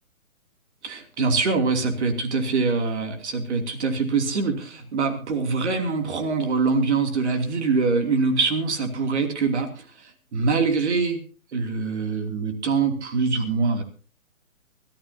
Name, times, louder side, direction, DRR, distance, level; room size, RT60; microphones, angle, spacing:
voice 1, 0.8-11.2 11.5-13.8, right 4 dB, 50° right, 6 dB, 3.0 m, -24 dB
24.0 x 13.5 x 2.9 m, 0.37 s
figure-of-eight pair, 140°, 43 cm